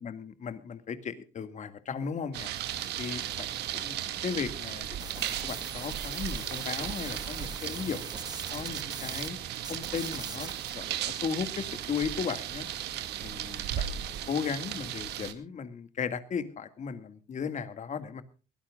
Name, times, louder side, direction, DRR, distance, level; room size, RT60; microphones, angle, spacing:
voice 1, 0.0-2.5 3.0-8.1 8.5-9.4 9.7-12.7 13.2-18.2, left 6 dB, 45° left, 11 dB, 2.1 m, -36 dB
sound 1, 2.3-15.3, right 11 dB, 75° right, 2.1 m, -36 dB
sound 2, 5.0-9.3 9.6-10.7, right 4 dB, 25° right, 2.5 m, -42 dB
22.5 x 17.0 x 2.4 m, 0.34 s
cardioid pair, 110°, 17 cm